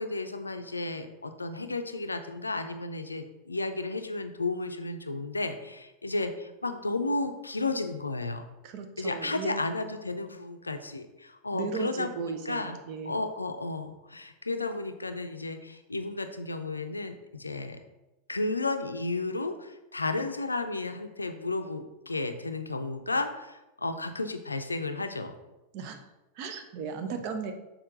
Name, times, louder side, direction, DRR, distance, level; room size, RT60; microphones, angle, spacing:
voice 1, 0.0-8.5 9.0-12.8 13.0-17.8 18.3-25.3, left 2 dB, 80° left, 8 dB, 0.5 m, -33 dB
voice 2, 8.6-9.6 11.5-13.1 25.7-26.0 26.4-27.5, right 5 dB, 45° right, 6 dB, 0.8 m, -36 dB
6.4 x 4.4 x 3.8 m, 1.0 s
figure-of-eight pair, 90°, 0 cm